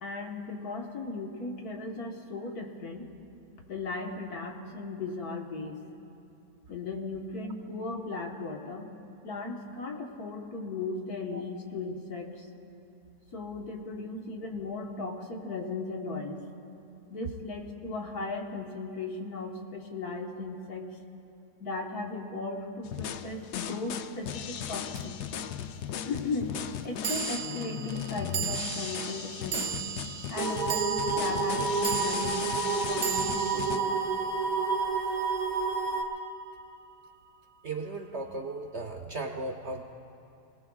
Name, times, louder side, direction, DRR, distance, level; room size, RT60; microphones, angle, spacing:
voice 1, 0.0-3.1 3.7-5.8 6.7-8.9 9.2-12.5 13.3-16.4 17.1-20.9 21.6-25.2 26.1-26.6 26.8-29.7 30.3-34.0, left 3 dB, 65° left, 1 dB, 1.8 m, -37 dB
sound 1, 22.8-33.8, left 9 dB, 80° left, 1.2 m, -37 dB
sound 2, 24.9-25.0 27.0-35.5, right 13 dB, 75° right, 1.1 m, -37 dB
sound 3, 30.4-36.0, right 5 dB, 30° right, 1.0 m, -29 dB
voice 2, 37.6-39.8, right 2 dB, 55° right, 3 dB, 0.8 m, -36 dB
26.5 x 18.0 x 2.4 m, 2.7 s
omnidirectional pair, 1.7 m